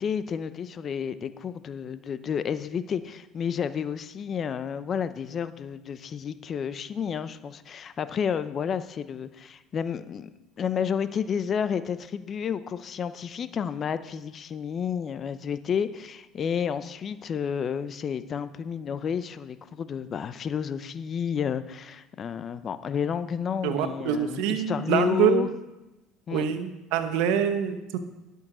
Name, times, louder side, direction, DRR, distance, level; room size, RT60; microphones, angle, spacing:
voice 1, 0.0-10.3 10.6-25.5 26.3-26.4, left 7 dB, 40° left, 13 dB, 0.7 m, -30 dB
voice 2, 23.6-25.5 26.3-28.0, right 9 dB, 75° right, 9 dB, 1.1 m, -25 dB
11.5 x 6.6 x 6.2 m, 0.99 s
supercardioid pair, 85°, 0 cm